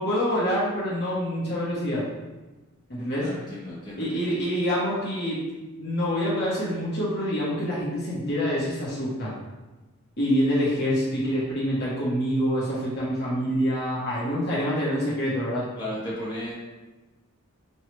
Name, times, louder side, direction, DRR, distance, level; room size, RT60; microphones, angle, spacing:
voice 1, 0.0-2.0 2.9-3.3 4.0-5.4 5.8-9.3 10.2-15.7, equal, 50° left, -7 dB, 1.0 m, -26 dB
voice 2, 3.2-4.4 15.8-16.5, left 1 dB, 20° left, -8 dB, 1.2 m, -35 dB
5.4 x 2.3 x 3.1 m, 1.1 s
head